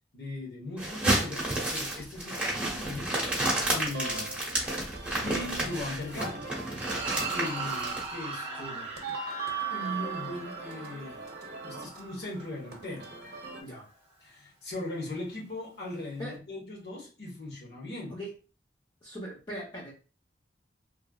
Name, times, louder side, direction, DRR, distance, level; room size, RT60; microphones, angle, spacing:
voice 1, 0.1-3.2 3.7-4.4 5.2-6.4 7.3-8.5 9.0-9.2 9.7-11.2 11.6-13.2 14.2-18.2, left 2 dB, 65° left, 1.0 m, -38 dB
sound 1, 0.8-8.0, right 1 dB, 5° right, 0.9 m, -31 dB
sound 2, 3.8-13.6, right 5 dB, 60° right, 0.7 m, -40 dB
sound 3, 6.8-13.3, right 4 dB, 35° right, 1.0 m, -39 dB
voice 2, 8.6-8.9 13.6-13.9 16.2-16.3 18.1-18.3 19.0-19.9, equal, 25° left, 0.7 m, -40 dB
3.1 x 2.4 x 2.3 m
head